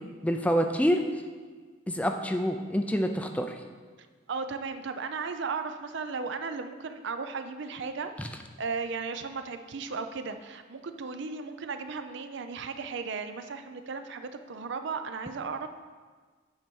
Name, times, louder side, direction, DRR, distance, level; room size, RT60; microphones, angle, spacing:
voice 1, 0.2-1.0 1.9-3.5, equal, 5° left, 5 dB, 0.4 m, -26 dB
voice 2, 4.3-8.3 8.6-15.7, right 4 dB, 60° right, 9 dB, 0.5 m, -35 dB
8.9 x 4.4 x 5.3 m, 1.5 s
head